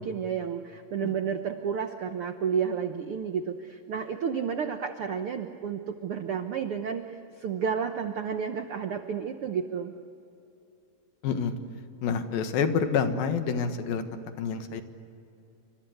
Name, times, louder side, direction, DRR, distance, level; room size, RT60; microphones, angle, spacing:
voice 1, 0.0-9.9, right 7 dB, 90° right, 7 dB, 1.2 m, -31 dB
voice 2, 11.2-11.5 12.0-14.8, left 6 dB, 85° left, 8 dB, 3.4 m, -28 dB
28.5 x 25.5 x 8.1 m, 2.8 s
omnidirectional pair, 4.1 m